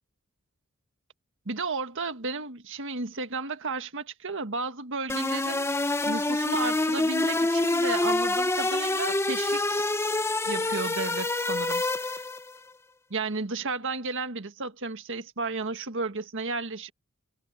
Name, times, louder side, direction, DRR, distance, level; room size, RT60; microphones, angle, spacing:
voice 1, 1.4-5.7 6.0-9.8 10.4-11.8 13.1-16.9, right 3 dB, 60° right, 1.6 m, -33 dB
sound 1, 5.1-12.5, left 2 dB, 10° left, 0.7 m, -26 dB
head